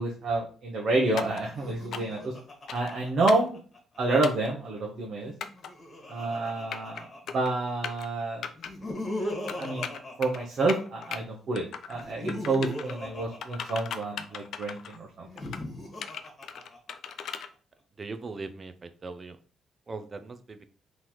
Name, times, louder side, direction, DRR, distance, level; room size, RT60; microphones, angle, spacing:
voice 1, 0.0-2.3 2.7-3.6 4.0-5.3 6.1-7.1 7.3-8.5 9.6-9.9 10.2-15.3, right 2 dB, 60° right, -2 dB, 0.8 m, -28 dB
sound 1, 1.2-1.4 1.9-2.2 2.7-2.9 3.3-3.5 4.2-4.5 5.4-5.7 6.5-7.0 7.3-7.5 7.8-8.1 8.4-8.7 9.5-10.4 10.7-11.2 11.5-12.0 12.3-12.9 13.4-15.0 15.4-15.6 16.0-17.5, left 7 dB, 70° left, 0.4 m, -37 dB
Laughter, 1.5-4.0 5.3-7.7 8.6-11.1 11.9-14.3 15.2-17.1, left 1 dB, 35° left, 1.4 m, -39 dB
voice 2, 18.0-19.4 19.9-20.6, right 3 dB, 35° right, 10 dB, 0.5 m, -39 dB
3.8 x 3.0 x 3.0 m, 0.39 s
cardioid pair, 90°, 0 cm